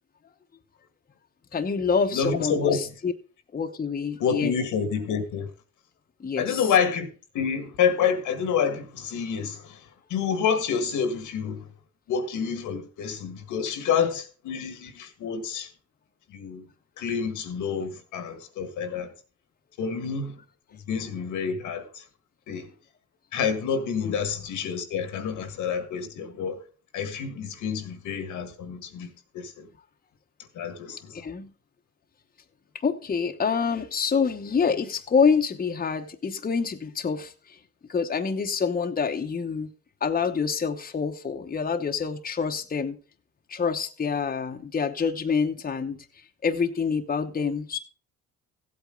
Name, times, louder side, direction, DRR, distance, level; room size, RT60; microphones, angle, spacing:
voice 1, 1.5-3.1 3.5-4.5 6.2-6.6 24.0-24.2 31.1-31.5 32.8-37.6 37.9-39.7 40.0-43.0 43.5-46.0 46.4-47.8, left 5 dB, 30° left, 1.0 m, -26 dB
voice 2, 2.1-2.8 4.2-5.5 6.4-7.1 7.3-11.7 12.1-15.7 16.3-16.7 17.0-19.1 19.8-20.4 20.7-22.0 22.5-22.7 23.3-26.6 26.9-29.7 30.5-31.2, left 6 dB, 85° left, 1.7 m, -28 dB
15.0 x 8.4 x 3.8 m
cardioid pair, 90°, 30 cm